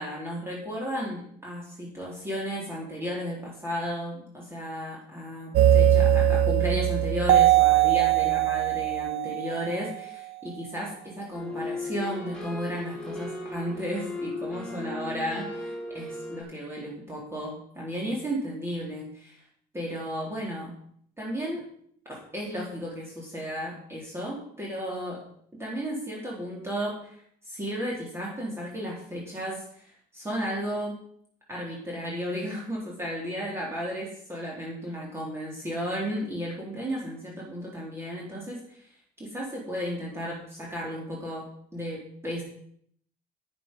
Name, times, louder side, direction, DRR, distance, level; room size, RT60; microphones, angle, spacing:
voice 1, 0.0-19.4 19.7-20.7 21.2-21.6 22.1-25.2 25.6-27.2 27.5-31.0 31.5-38.9 39.2-41.5 41.7-42.4, equal, 15° right, -4 dB, 4.0 m, -34 dB
sound 1, 5.5-10.2, right 11 dB, 90° right, 0.8 m, -21 dB
sound 2, 11.3-16.4, left 2 dB, 5° left, 4.9 m, -36 dB
10.0 x 9.7 x 5.6 m, 0.64 s
cardioid pair, 110°, 17 cm